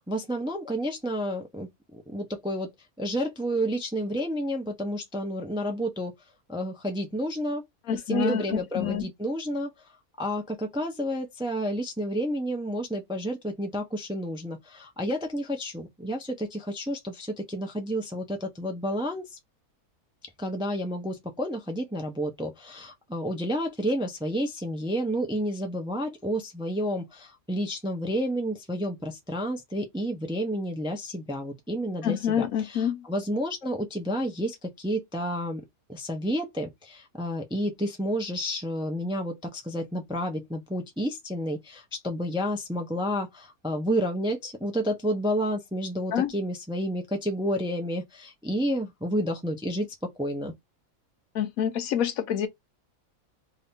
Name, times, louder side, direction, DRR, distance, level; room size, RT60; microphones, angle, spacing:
voice 1, 0.1-2.7 3.0-6.1 6.5-7.6 7.9-9.7 10.2-19.3 20.4-35.6 35.9-50.5, equal, 5° right, 0.4 m, -30 dB
voice 2, 7.9-9.1 32.0-33.0 46.1-46.3 51.3-52.5, left 9 dB, 85° left, 1.2 m, -27 dB
2.8 x 2.7 x 3.5 m
omnidirectional pair, 1.5 m